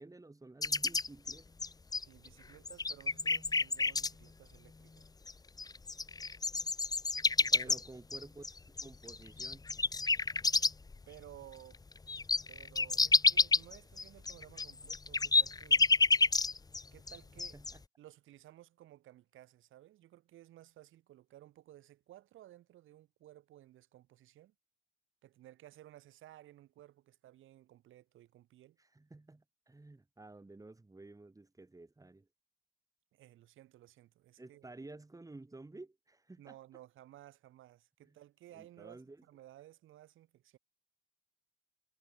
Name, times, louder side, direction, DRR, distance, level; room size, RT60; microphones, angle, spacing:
voice 1, 0.0-1.6 7.5-9.7 17.4-17.8 28.8-32.3 34.4-36.6 38.0-38.2 38.5-39.2, right 2 dB, 15° right, 3.9 m, -52 dB
sound 1, 0.6-2.3 2.7-4.1 5.3-5.4 5.6-11.0 11.3-11.4 11.7-16.8 17.1-17.7, left 3 dB, 20° left, 0.8 m, -29 dB
voice 2, 2.0-5.1 7.4-7.7 11.1-11.8 12.5-15.9 16.9-17.6 18.0-24.5 25.2-28.8 33.1-34.7 36.4-40.6, right 14 dB, 85° right, 6.4 m, -57 dB
cardioid pair, 90°, 20 cm